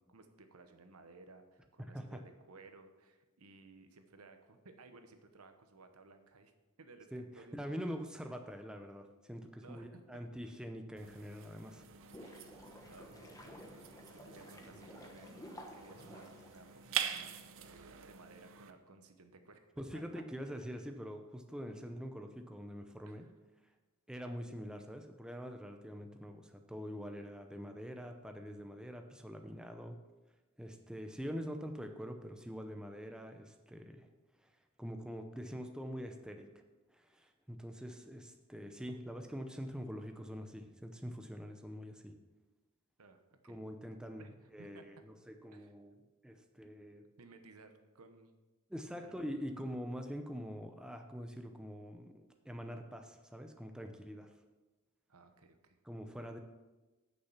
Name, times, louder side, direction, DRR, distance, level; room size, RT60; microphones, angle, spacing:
voice 1, 0.0-6.5 6.8-7.6 9.6-10.2 12.9-19.6 19.9-20.0 23.1-23.3 43.0-43.6 44.2-44.8 45.5-45.7 47.2-48.3 49.0-49.2 55.1-55.8, right 3 dB, 80° right, 7 dB, 1.0 m, -58 dB
voice 2, 1.8-2.2 7.1-11.8 19.8-23.3 24.1-30.0 30.6-34.1 34.4-34.5 34.8-36.5 36.9-42.1 43.4-44.3 44.5-47.1 48.7-54.3 55.8-56.4, equal, 5° right, 5 dB, 0.6 m, -44 dB
sound 1, 11.0-18.7, right 9 dB, 65° right, 0.7 m, -45 dB
sound 2, 11.8-17.2, equal, 15° left, 1.2 m, -53 dB
8.6 x 6.7 x 5.7 m, 1.1 s
head